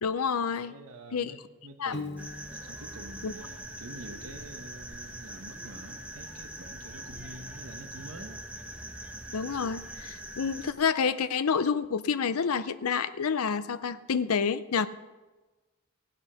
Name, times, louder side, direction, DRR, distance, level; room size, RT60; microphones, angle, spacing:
voice 1, 0.0-0.7 1.1-1.3 1.8-1.9 3.2-3.3 9.3-14.9, left 6 dB, 85° left, 13 dB, 0.6 m, -28 dB
voice 2, 0.6-8.4, right 1 dB, 75° right, 5 dB, 1.3 m, -47 dB
Piano, 1.9-2.9, left 3 dB, 50° left, 1.0 m, -39 dB
sound 1, 2.2-10.7, right 1 dB, 5° right, 1.0 m, -43 dB
18.0 x 8.4 x 5.7 m, 1.2 s
head